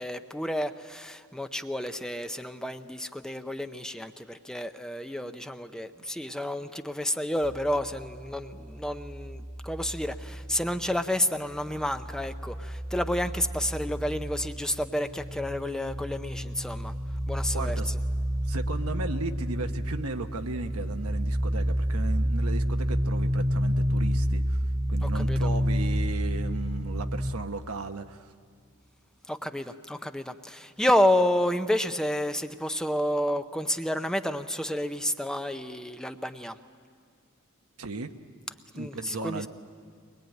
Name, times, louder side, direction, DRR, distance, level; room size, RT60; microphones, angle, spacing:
voice 1, 0.0-16.9 17.3-17.8 25.0-25.5 29.3-36.6 38.8-39.5, left 1 dB, 5° left, 8 dB, 0.6 m, -30 dB
sound 1, 7.4-11.2 11.5-27.3, equal, 30° right, 0.9 m, -30 dB
voice 2, 17.5-17.9 18.5-24.6 24.9-28.3 37.8-38.1 38.7-39.5, right 3 dB, 80° right, 7 dB, 1.1 m, -35 dB
23.5 x 21.0 x 9.1 m, 2.1 s
head